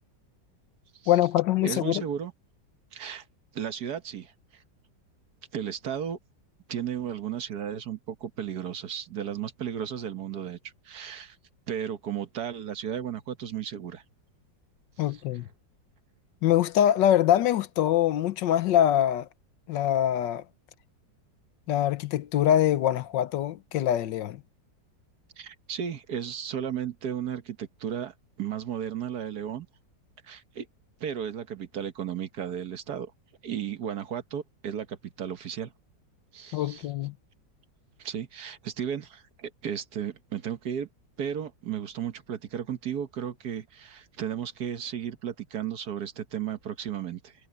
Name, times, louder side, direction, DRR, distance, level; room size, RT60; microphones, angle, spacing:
voice 1, 1.1-2.0 15.0-15.4 16.4-19.3 19.7-20.4 21.7-24.4 36.5-37.1, left 11 dB, 80° left, 1.5 m, -24 dB
voice 2, 1.6-2.3 2.9-3.2 3.5-4.3 5.5-6.2 6.7-11.4 11.7-14.0 15.1-15.2 25.4-29.7 30.2-30.7 31.0-33.1 33.4-35.7 36.3-36.9 38.0-40.9 41.2-47.3, right 9 dB, 60° right, 1.6 m, -34 dB
omnidirectional pair, 2.0 m